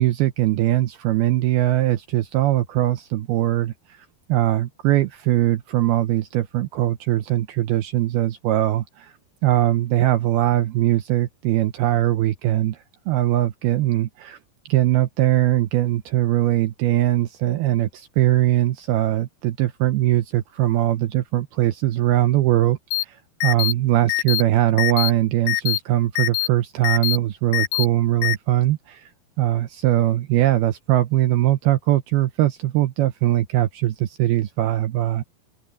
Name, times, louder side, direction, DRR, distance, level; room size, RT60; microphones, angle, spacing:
voice 1, 0.0-3.7 4.3-9.1 9.4-12.8 13.1-14.4 14.7-23.2 23.4-29.1 29.4-35.2, right 14 dB, 80° right, 2.4 m, -21 dB
sound 1, 22.9-23.0 23.4-23.7 24.1-24.4 24.8-25.1 25.5-25.8 26.2-26.5 26.8-27.2 27.5-27.8 28.2-28.3, left 19 dB, 80° left, 2.7 m, -22 dB
omnidirectional pair, 5.2 m